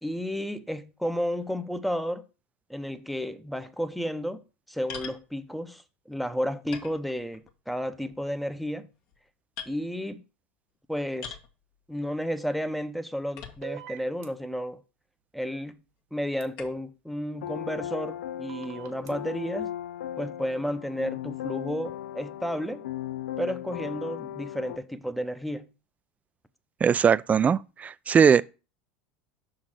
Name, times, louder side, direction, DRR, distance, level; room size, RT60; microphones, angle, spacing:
voice 1, 0.0-2.2 2.7-4.4 4.7-8.9 9.7-10.2 10.9-11.4 11.9-14.8 15.3-15.8 16.1-19.7 20.2-22.8 23.4-25.7, equal, ahead, 0.7 m, -32 dB
sound 1, 4.9-5.2 6.1-6.2 6.7-7.5 7.9-8.3 8.9-9.2 9.6-9.8 11.2-11.5 13.4-13.9 14.6-14.7 16.6-16.9, left 6 dB, 60° left, 1.5 m, -42 dB
sound 2, 13.6-14.3 16.4-16.5 18.5-19.1, right 12 dB, 65° right, 1.2 m, -42 dB
sound 3, 17.3-24.8, left 11 dB, 75° left, 0.4 m, -37 dB
voice 2, 26.8-28.4, right 7 dB, 25° right, 0.3 m, -20 dB
6.0 x 3.9 x 6.2 m
hypercardioid pair, 85°, 6 cm